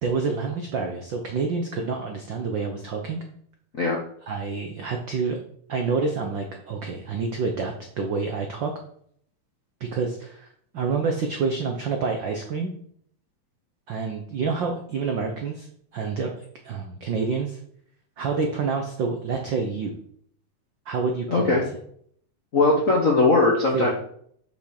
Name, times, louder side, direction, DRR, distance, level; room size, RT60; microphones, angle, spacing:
voice 1, 0.0-3.2 4.3-5.4 5.7-8.7 9.8-12.7 13.9-15.7 15.9-16.3 16.6-17.6 18.2-20.0 20.9-21.6 23.7-23.9, right 4 dB, 75° right, 3 dB, 1.0 m, -28 dB
voice 2, 21.3-21.6 22.5-23.9, left 3 dB, 60° left, -2 dB, 0.8 m, -19 dB
6.4 x 5.9 x 6.5 m, 0.64 s
omnidirectional pair, 3.4 m